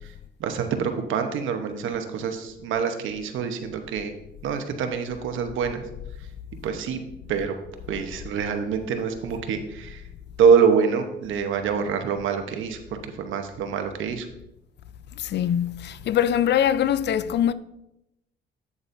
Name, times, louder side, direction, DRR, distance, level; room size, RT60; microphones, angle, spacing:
voice 1, 0.4-4.1 4.4-5.8 6.6-7.0 7.3-7.5 7.9-10.0 10.4-14.3, right 6 dB, 80° right, 1.0 m, -25 dB
voice 2, 15.2-17.5, left 10 dB, 60° left, 0.4 m, -23 dB
8.7 x 8.1 x 2.6 m
cardioid pair, 90°, 20 cm